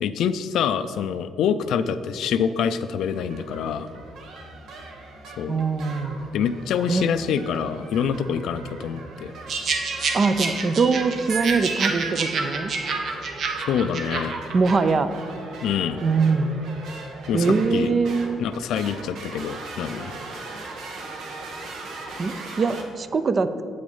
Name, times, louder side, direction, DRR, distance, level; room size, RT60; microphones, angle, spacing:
voice 1, 0.0-3.9 5.4-5.6 6.3-9.3 13.6-14.3 15.6-16.0 17.3-17.9 18.4-20.1, left 7 dB, 80° left, 12 dB, 0.3 m, -26 dB
sound 1, 3.0-22.8, right 2 dB, 80° right, 1.1 m, -40 dB
voice 2, 5.5-6.3 6.9-7.1 10.1-12.7 14.5-15.3 16.0-16.6 17.3-18.4 22.2-23.6, right 4 dB, 40° right, 11 dB, 0.5 m, -22 dB
sound 2, 9.5-14.8, right 4 dB, 60° right, 0.9 m, -28 dB
7.8 x 5.1 x 5.4 m, 2.3 s
cardioid pair, 90°, 0 cm